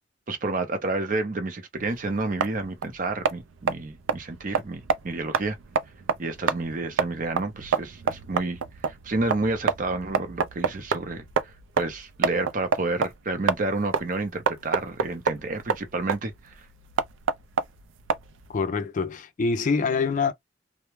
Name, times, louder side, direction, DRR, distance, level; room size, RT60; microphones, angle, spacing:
voice 1, 0.3-5.6 6.2-16.5, right 2 dB, 45° right, 0.6 m, -30 dB
sound 1, 1.8-18.6, right 6 dB, 85° right, 0.4 m, -29 dB
voice 2, 18.5-20.3, left 4 dB, 40° left, 0.4 m, -25 dB
2.1 x 2.0 x 3.0 m
head